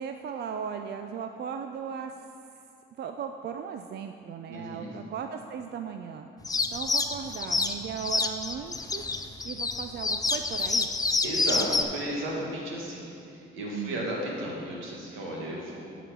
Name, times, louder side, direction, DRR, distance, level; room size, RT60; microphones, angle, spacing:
voice 1, 0.0-2.1 3.0-6.3 6.7-9.0 9.4-10.9 13.7-14.1, right 7 dB, 55° right, 6 dB, 0.4 m, -37 dB
voice 2, 4.5-5.0 9.4-9.5 11.2-15.9, right 1 dB, 85° right, -3 dB, 2.0 m, -34 dB
sound 1, 6.4-11.8, left 3 dB, 20° left, 0.5 m, -28 dB
9.7 x 5.0 x 6.0 m, 2.6 s
cardioid pair, 90°, 20 cm